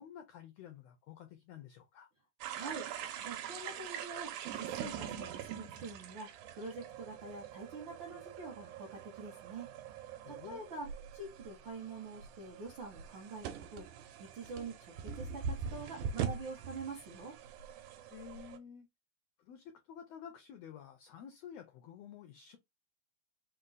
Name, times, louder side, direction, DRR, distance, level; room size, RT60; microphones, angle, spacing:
voice 1, 0.0-2.1 10.2-10.6 18.1-18.9 19.4-22.6, left 8 dB, 85° left, 1.4 m, -51 dB
voice 2, 2.4-2.9 3.2-9.7 10.3-10.9 11.1-13.9 14.2-17.3, right 3 dB, 70° right, 1.1 m, -46 dB
sound 1, 2.4-18.6, right 7 dB, 85° right, 2.2 m, -43 dB
5.1 x 2.2 x 3.9 m
omnidirectional pair, 3.5 m